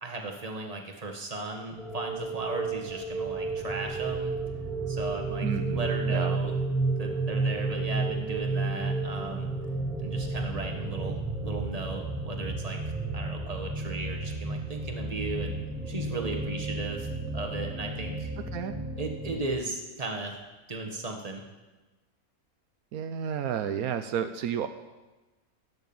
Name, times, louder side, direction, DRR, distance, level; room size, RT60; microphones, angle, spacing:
voice 1, 0.0-4.3 4.9-6.6 7.0-9.5 10.0-12.8 13.1-15.6 15.9-18.3 19.0-20.4 20.7-21.4, right 3 dB, 25° right, 2 dB, 1.7 m, -36 dB
sound 1, 1.8-19.5, right 3 dB, ahead, 1.4 m, -32 dB
voice 2, 5.4-6.4 18.5-18.7 22.9-24.7, right 8 dB, 80° right, 9 dB, 1.1 m, -31 dB
14.5 x 6.5 x 8.8 m, 1.2 s
omnidirectional pair, 1.6 m